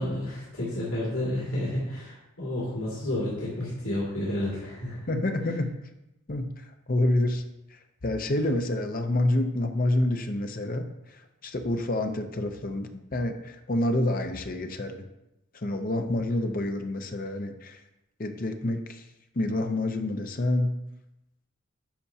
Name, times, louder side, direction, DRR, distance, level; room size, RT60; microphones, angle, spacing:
voice 1, 0.0-5.0, left 1 dB, 85° left, -8 dB, 2.4 m, -31 dB
voice 2, 5.1-5.7 6.3-6.5 6.9-7.4 8.0-10.8 11.4-15.0 15.5-17.8 18.2-19.0 19.4-20.8, left 1 dB, 40° left, 6 dB, 0.6 m, -27 dB
10.5 x 5.7 x 2.8 m, 0.90 s
head